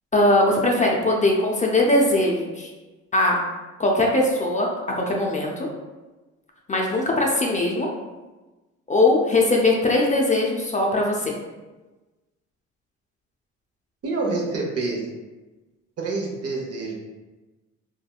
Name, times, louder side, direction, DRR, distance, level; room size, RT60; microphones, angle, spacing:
voice 1, 0.1-2.7 3.1-3.4 3.8-4.7 5.0-5.7 6.7-7.9 8.9-11.3, left 2 dB, 25° left, -1 dB, 0.5 m, -20 dB
voice 2, 14.0-15.1 16.0-17.0, right 3 dB, 50° right, -1 dB, 0.8 m, -27 dB
3.4 x 2.1 x 2.2 m, 1.2 s
supercardioid pair, 75°, 31 cm